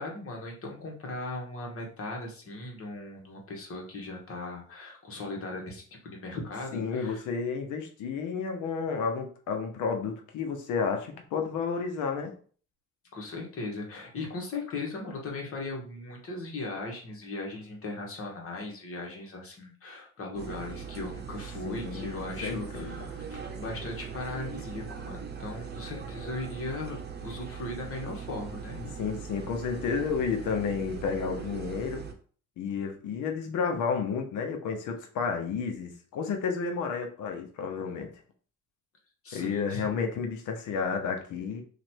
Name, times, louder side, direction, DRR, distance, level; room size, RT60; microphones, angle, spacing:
voice 1, 0.0-7.2 13.1-28.8 39.2-39.9, left 2 dB, 50° left, 0 dB, 1.4 m, -38 dB
voice 2, 6.7-12.3 21.6-23.1 28.7-32.1 32.6-38.1 39.3-41.6, left 5 dB, 85° left, 4 dB, 0.9 m, -31 dB
sound 1, 20.3-32.1, right 6 dB, 35° right, 0.8 m, -40 dB
3.1 x 2.6 x 4.4 m, 0.43 s
cardioid pair, 90°, 30 cm